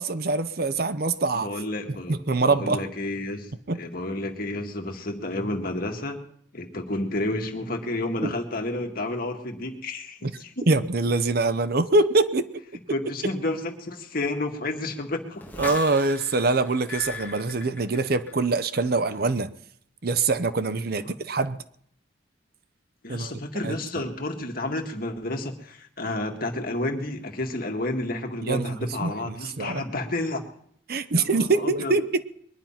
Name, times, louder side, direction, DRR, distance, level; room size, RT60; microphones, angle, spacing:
voice 1, 0.0-1.5 2.1-2.8 3.7-3.8 8.2-8.3 10.2-10.3 10.7-12.5 15.6-19.5 20.0-21.6 23.1-23.3 23.6-23.8 28.5-28.8 29.0-29.8 30.9-32.2, right 3 dB, 50° right, 13 dB, 0.8 m, -24 dB
voice 2, 1.3-2.2 2.4-6.2 6.5-10.6 12.9-15.5 20.9-21.2 23.0-30.4 31.1-31.9, left 2 dB, 50° left, 4 dB, 2.0 m, -31 dB
sound 1, 15.4-18.5 18.8-19.2, left 4 dB, 10° left, 2.2 m, -38 dB
22.0 x 10.5 x 5.8 m, 0.66 s
head